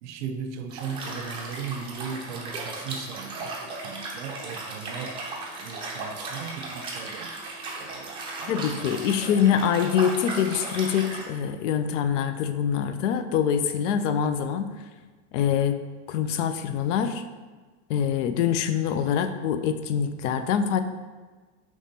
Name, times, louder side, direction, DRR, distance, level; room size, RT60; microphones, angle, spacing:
voice 1, 0.0-5.2 5.6-7.3 7.8-9.3, right 6 dB, 75° right, 8 dB, 0.5 m, -38 dB
Liquid, 0.7-11.3, right 3 dB, 15° right, 0.4 m, -36 dB
voice 2, 8.5-14.7 15.3-15.8 16.1-17.2 17.9-20.8, left 8 dB, 90° left, 10 dB, 0.5 m, -24 dB
5.2 x 3.1 x 2.7 m, 1.4 s
supercardioid pair, 165°, 36 cm